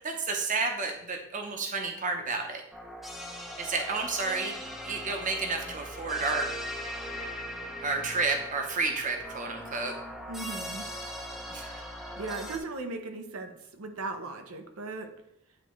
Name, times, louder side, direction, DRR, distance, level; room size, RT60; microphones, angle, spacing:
voice 1, 0.0-2.6 3.6-4.5 4.8-6.5 7.8-10.0 11.5-12.0, right 3 dB, 40° right, 3 dB, 0.7 m, -31 dB
sound 1, 2.7-12.6, equal, ahead, 0.5 m, -40 dB
voice 2, 10.3-10.9 12.1-15.1, right 3 dB, 85° right, 6 dB, 0.7 m, -37 dB
9.0 x 3.4 x 3.1 m, 0.79 s
head